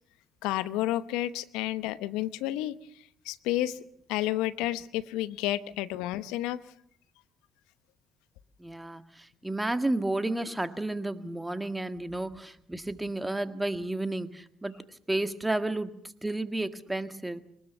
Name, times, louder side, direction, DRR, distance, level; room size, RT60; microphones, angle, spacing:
voice 1, 0.4-2.8 3.2-3.8 4.1-6.6, left 15 dB, 75° left, 15 dB, 0.9 m, -30 dB
voice 2, 8.6-15.9 16.2-17.4, right 2 dB, 10° right, 10 dB, 1.8 m, -32 dB
23.0 x 20.0 x 7.0 m, 0.65 s
hypercardioid pair, 55°, 0 cm